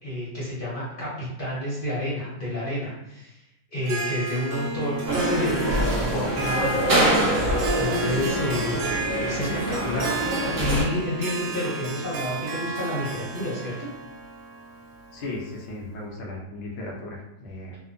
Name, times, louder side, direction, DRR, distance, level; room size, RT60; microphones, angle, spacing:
voice 1, 0.0-3.4 3.7-6.8 7.8-13.9, left 1 dB, 45° left, -7 dB, 0.7 m, -30 dB
Harp, 3.8-15.7, right 2 dB, 85° right, 1.2 m, -32 dB
sound 1, 5.1-10.8, right 1 dB, 55° right, 0.7 m, -25 dB
voice 2, 15.1-17.8, left 2 dB, 80° left, -1 dB, 0.5 m, -36 dB
2.7 x 2.3 x 2.5 m, 0.82 s
omnidirectional pair, 1.8 m